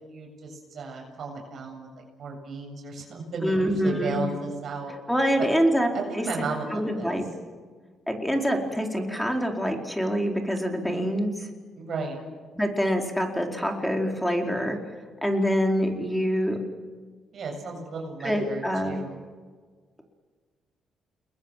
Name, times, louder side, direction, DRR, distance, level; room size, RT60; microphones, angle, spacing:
voice 1, 0.1-1.9 2.2-4.9 5.4-5.5 5.9-7.1 11.8-12.2 17.3-19.2, right 3 dB, 55° right, 1 dB, 7.6 m, -34 dB
voice 2, 3.4-4.2 5.1-5.9 6.1-6.2 6.7-7.3 8.1-11.5 12.5-14.8 15.2-16.6 18.2-19.0, equal, 5° left, 2 dB, 4.4 m, -25 dB
30.0 x 21.5 x 7.5 m, 1.5 s
cardioid pair, 90°, 0 cm